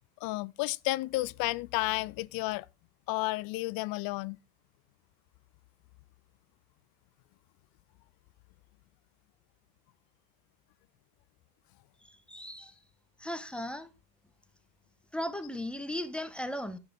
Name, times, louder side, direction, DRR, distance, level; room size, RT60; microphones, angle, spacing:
voice 1, 0.2-2.7 3.1-4.4, left 20 dB, 50° left, 0.5 m, -32 dB
voice 2, 12.0-12.7 13.2-13.9 15.1-16.8, left 1 dB, ahead, 1.2 m, -37 dB
10.5 x 7.0 x 3.5 m
hypercardioid pair, 75°, 45 cm